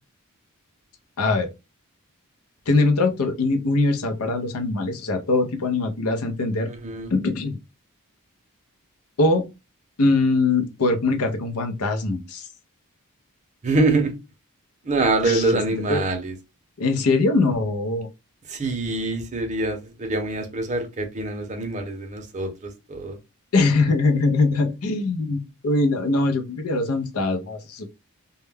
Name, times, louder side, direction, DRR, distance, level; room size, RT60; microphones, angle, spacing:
voice 1, 1.2-1.5 2.7-6.7 7.1-7.6 9.2-9.4 10.0-12.5 15.2-15.4 15.9-16.0 16.8-18.1 23.5-27.9, left 3 dB, 80° left, 0.6 m, -22 dB
voice 2, 6.7-7.1 13.6-14.2 14.8-16.3 18.5-23.2, right 2 dB, 30° right, 0.6 m, -25 dB
2.2 x 2.1 x 3.3 m
head